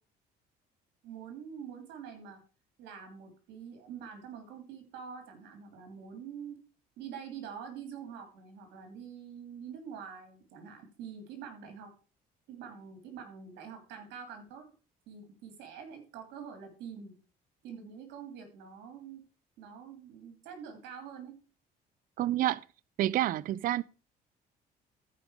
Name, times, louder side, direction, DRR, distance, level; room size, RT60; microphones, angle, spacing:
voice 1, 1.0-2.4 2.8-6.6 7.0-11.9 12.5-14.7 15.1-17.1 17.6-19.2 19.6-21.4, right 7 dB, 85° right, 3.0 m, -45 dB
voice 2, 22.2-22.6 23.0-23.8, right 13 dB, 55° right, 0.4 m, -28 dB
14.0 x 5.3 x 4.8 m
cardioid pair, 110°, 17 cm